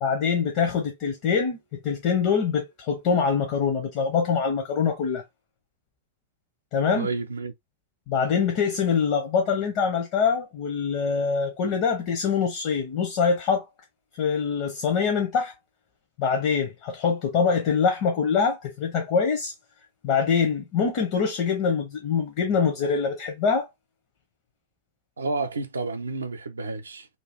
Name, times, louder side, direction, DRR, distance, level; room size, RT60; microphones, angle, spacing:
voice 1, 0.0-5.2 6.7-7.1 8.1-13.7 14.2-15.5 16.2-19.5 20.0-23.7, left 6 dB, 45° left, 0.7 m, -24 dB
voice 2, 6.9-7.5 25.2-27.1, right 3 dB, 75° right, 0.5 m, -30 dB
2.7 x 2.3 x 3.3 m
figure-of-eight pair, 90°, 0 cm